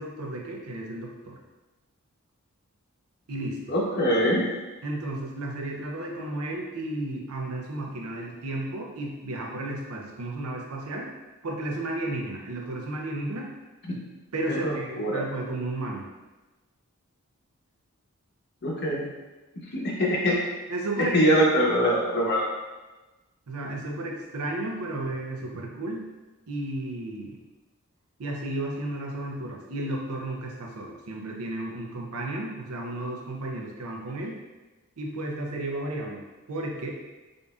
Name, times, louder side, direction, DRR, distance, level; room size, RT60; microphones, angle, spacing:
voice 1, 0.0-1.4 3.3-3.7 4.8-11.1 11.4-13.5 14.3-16.1 20.7-21.2 23.5-26.1 26.5-27.4 28.2-34.4 35.0-36.9, right 2 dB, 85° right, 0 dB, 0.7 m, -33 dB
voice 2, 3.7-4.4 14.5-15.2 18.6-19.1 19.7-20.4 21.1-22.4, equal, 50° left, -3 dB, 0.9 m, -23 dB
5.1 x 2.6 x 2.3 m, 1.2 s
head